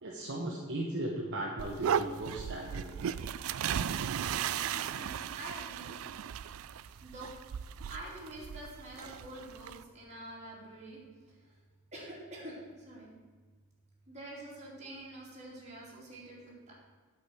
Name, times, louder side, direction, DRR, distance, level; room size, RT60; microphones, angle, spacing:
voice 1, 0.0-2.9, right 1 dB, 60° right, -2 dB, 1.1 m, -37 dB
sound 1, 1.6-9.8, right 8 dB, 75° right, 0.4 m, -36 dB
voice 2, 4.7-6.0 7.0-7.3 7.6-11.0 11.3-11.5 11.9-13.1 14.1-16.7, right 1 dB, 35° right, -5 dB, 3.0 m, -47 dB
8.7 x 5.2 x 7.8 m, 1.5 s
head